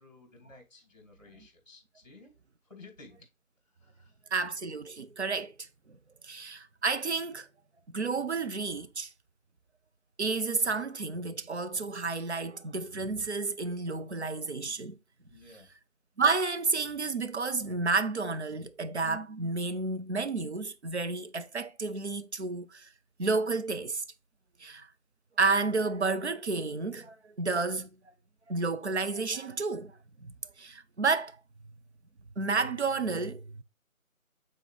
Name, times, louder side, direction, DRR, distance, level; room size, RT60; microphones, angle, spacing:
voice 1, 0.0-2.3 2.6-3.2 3.7-4.2 15.3-15.7, left 3 dB, 30° left, 2.2 m, -54 dB
voice 2, 4.3-5.5 6.2-7.5 7.9-9.1 10.2-15.0 16.2-22.9 23.2-24.0 24.6-24.9 25.4-27.9 28.5-29.9 30.2-31.4 32.4-33.6, right 4 dB, 50° right, 0.6 m, -31 dB
8.2 x 3.7 x 3.2 m
figure-of-eight pair, 160°, 43 cm